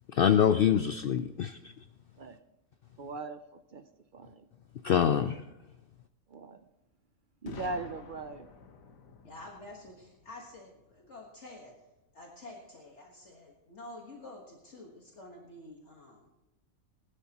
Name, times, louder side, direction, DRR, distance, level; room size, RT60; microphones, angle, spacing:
voice 1, 0.1-1.6 4.8-5.4, left 8 dB, 85° left, 10 dB, 0.5 m, -25 dB
voice 2, 3.0-3.9 4.1-4.5 5.2-5.3 6.3-6.7 7.4-8.5, right 3 dB, 55° right, 9 dB, 0.6 m, -40 dB
Boom, 7.5-11.3, left 5 dB, 70° left, 1.4 m, -49 dB
voice 3, 9.2-11.7 12.1-16.3, left 2 dB, 55° left, -1 dB, 1.7 m, -49 dB
19.0 x 12.0 x 2.9 m, 0.99 s
omnidirectional pair, 1.5 m